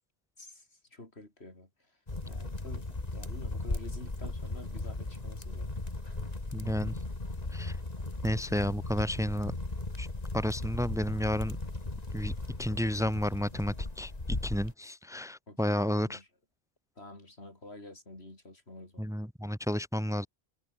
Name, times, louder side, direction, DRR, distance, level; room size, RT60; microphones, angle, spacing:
voice 1, 0.4-1.9 2.3-5.8 15.5-16.3 17.0-19.1, left 2 dB, 85° left, 5.4 m, -49 dB
sound 1, 2.1-14.7, left 2 dB, 40° left, 2.6 m, -37 dB
voice 2, 6.5-7.0 7.5-7.8 8.2-9.5 10.0-10.1 10.3-11.6 12.1-12.3 12.6-16.2 19.0-20.3, equal, 5° right, 1.8 m, -31 dB
omnidirectional pair, 1.1 m